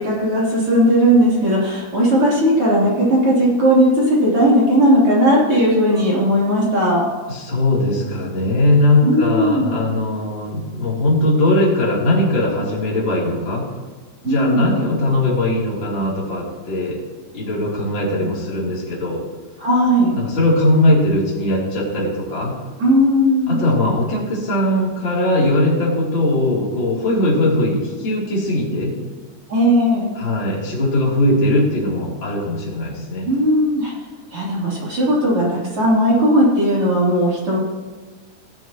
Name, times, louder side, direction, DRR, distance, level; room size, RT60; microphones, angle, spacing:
voice 1, 0.0-7.0 9.0-9.7 14.2-14.7 19.6-20.1 22.8-23.6 29.5-30.1 33.2-33.9 34.3-37.6, equal, 40° right, -6 dB, 4.0 m, -16 dB
voice 2, 7.3-13.7 14.2-17.0 17.3-19.2 20.1-22.5 23.5-29.0 30.2-33.3, left 1 dB, 35° left, -5 dB, 3.7 m, -19 dB
17.5 x 12.0 x 3.0 m, 1.3 s
omnidirectional pair, 3.9 m